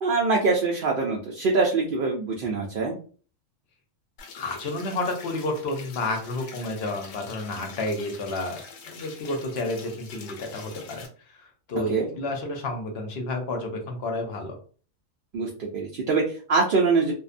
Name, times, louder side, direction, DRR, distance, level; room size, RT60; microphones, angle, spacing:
voice 1, 0.0-3.0 11.9-12.1 15.3-17.1, right 4 dB, 65° right, -2 dB, 0.5 m, -24 dB
sound 1, 4.2-11.1, left 5 dB, 85° left, 1.0 m, -44 dB
voice 2, 4.4-14.6, left 2 dB, 60° left, 3 dB, 0.8 m, -31 dB
2.6 x 2.1 x 2.4 m, 0.41 s
omnidirectional pair, 1.4 m